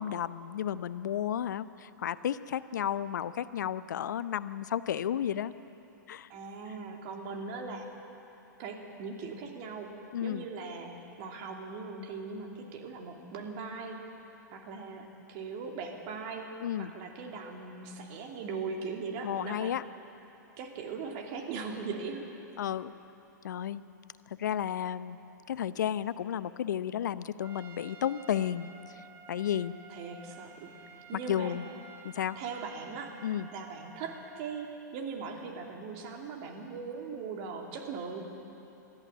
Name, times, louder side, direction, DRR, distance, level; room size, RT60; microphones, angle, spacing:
voice 1, 0.0-5.5 6.1-6.3 10.1-10.4 16.6-16.9 19.2-19.8 22.6-22.9 23.4-23.8 24.4-25.2 25.5-28.7 29.3-29.7 31.3-31.6 32.0-32.4 33.2-33.5, left 10 dB, 70° left, 15 dB, 0.7 m, -32 dB
voice 2, 6.3-7.9 8.6-14.0 14.5-16.5 16.7-19.7 20.6-22.4 29.9-31.5 32.3-33.1 33.5-38.3, right 4 dB, 45° right, 2 dB, 2.9 m, -40 dB
Trumpet, 27.4-34.7, right 6 dB, 25° right, 1.3 m, -52 dB
21.5 x 14.0 x 8.9 m, 3.0 s
hypercardioid pair, 110°, 10 cm